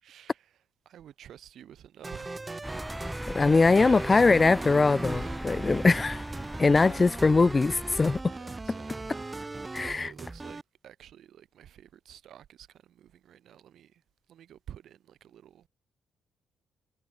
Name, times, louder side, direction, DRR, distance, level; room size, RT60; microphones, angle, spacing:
voice 1, 0.0-0.5 0.8-2.4 3.7-4.6 5.1-5.5 6.7-7.3 8.3-9.2 9.8-14.0 14.3-15.7, right 10 dB, 70° right, 6.7 m, -50 dB
sound 1, 2.0-10.6, right 3 dB, 20° right, 1.1 m, -39 dB
sound 2, 2.6-8.2, equal, ahead, 5.3 m, -38 dB
voice 2, 3.3-6.2 6.6-8.2 9.7-10.1, left 3 dB, 25° left, 0.9 m, -22 dB
cardioid pair, 90°, 0 cm